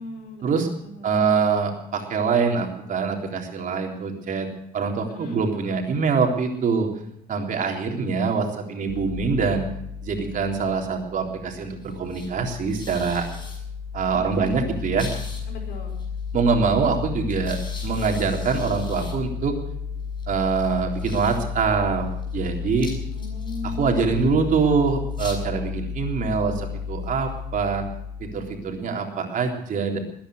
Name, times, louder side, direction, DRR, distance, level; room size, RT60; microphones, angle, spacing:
voice 1, 0.0-1.3 5.1-5.4 14.1-14.6 15.5-16.0 23.1-24.5, left 3 dB, 75° left, 1 dB, 5.5 m, -37 dB
voice 2, 1.0-6.9 7.3-9.7 10.0-13.2 13.9-15.1 16.3-19.5 20.3-22.1 22.3-22.9 23.6-27.9 28.2-30.0, right 5 dB, 50° right, 2 dB, 3.7 m, -24 dB
sound 1, 8.9-28.8, left 6 dB, 25° left, 6.6 m, -33 dB
20.5 x 10.0 x 6.4 m, 0.75 s
cardioid pair, 110°, 17 cm